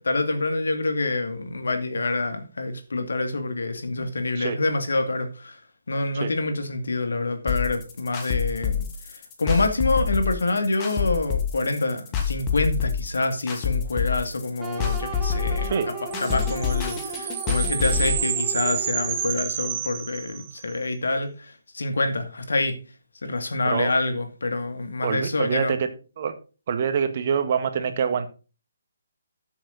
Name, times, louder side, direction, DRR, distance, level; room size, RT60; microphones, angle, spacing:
voice 1, 0.0-5.6 5.9-15.7 16.2-22.8 23.2-25.7, left 2 dB, 70° left, 2.4 m, -26 dB
sound 1, 7.5-18.1, left 7 dB, 20° left, 2.1 m, -27 dB
sound 2, 14.6-19.5, right 4 dB, 5° right, 2.2 m, -36 dB
sound 3, 16.1-20.7, right 9 dB, 25° right, 1.5 m, -30 dB
voice 2, 25.0-25.9 26.2-26.3 26.7-28.3, right 7 dB, 45° right, 1.7 m, -25 dB
13.0 x 7.2 x 3.9 m
figure-of-eight pair, 140°, 0 cm